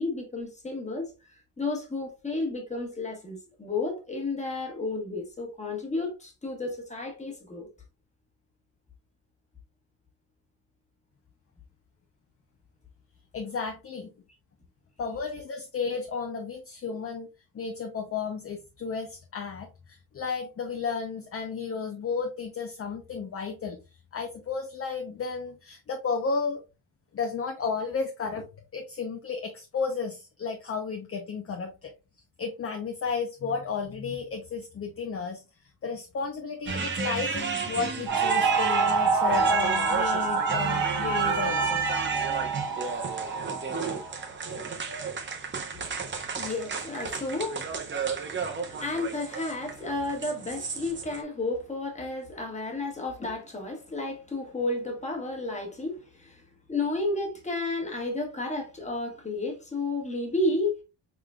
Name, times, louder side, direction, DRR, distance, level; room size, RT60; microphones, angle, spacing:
voice 1, 0.0-7.7 16.9-17.0 45.7-46.0 46.3-48.1 48.4-60.8, left 2 dB, 15° left, 1.3 m, -32 dB
voice 2, 13.3-14.1 15.0-17.3 17.5-23.8 24.1-26.6 27.1-28.5 28.7-31.9 32.4-35.4 35.8-42.1, left 5 dB, 30° left, 0.6 m, -33 dB
sound 1, 36.7-51.2, right 5 dB, 25° right, 0.7 m, -33 dB
sound 2, 38.1-44.2, right 5 dB, 75° right, 1.8 m, -27 dB
4.8 x 3.8 x 2.2 m
cardioid pair, 160°, 44 cm